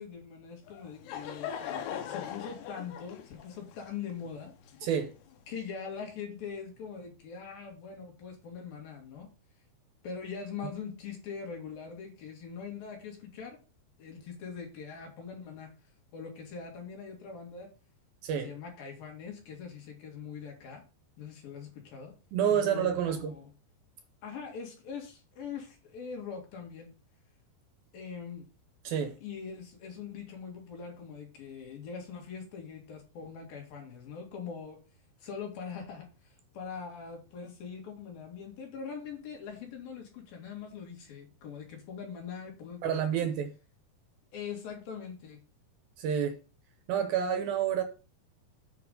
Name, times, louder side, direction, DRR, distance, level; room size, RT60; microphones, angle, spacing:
voice 1, 0.0-1.5 2.0-4.9 5.5-9.3 10.0-13.6 14.0-15.7 16.1-17.7 18.4-20.8 21.2-22.1 22.5-23.5 24.2-26.9 27.9-28.5 29.2-34.8 35.2-43.3 44.3-45.4, left 6 dB, 60° left, 3.8 m, -42 dB
Laughter / Crowd, 0.7-5.3, left 9 dB, 85° left, 3.0 m, -40 dB
voice 2, 4.8-5.1 18.2-18.5 22.3-23.3 28.8-29.2 42.8-43.5 46.0-46.4 46.9-47.8, right 8 dB, 75° right, 2.5 m, -29 dB
8.4 x 5.0 x 5.4 m
omnidirectional pair, 4.8 m